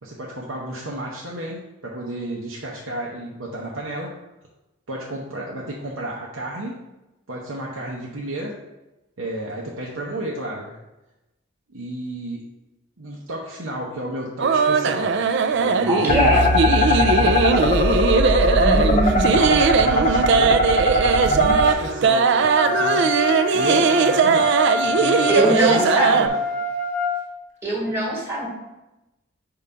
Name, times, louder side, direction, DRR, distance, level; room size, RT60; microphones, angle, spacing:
voice 1, 0.0-4.1 4.9-6.8 7.3-8.6 9.2-10.8 11.7-12.4 13.0-15.2 15.6-16.5 16.8-17.9 19.1-20.7 21.2-23.1 23.5-26.3, right 1 dB, 85° right, -4 dB, 0.8 m, -31 dB
sound 1, 14.4-26.3, right 5 dB, 60° right, 0.3 m, -19 dB
voice 2, 15.9-16.5 18.6-19.4 25.3-26.1 27.6-28.5, right 1 dB, 10° right, -2 dB, 1.3 m, -22 dB
sound 2, 16.1-21.7, left 1 dB, 35° left, 0.5 m, -20 dB
Wind instrument woodwind instrument, 22.5-27.1, left 2 dB, 35° right, 0.9 m, -25 dB
4.7 x 3.8 x 5.5 m, 0.98 s
head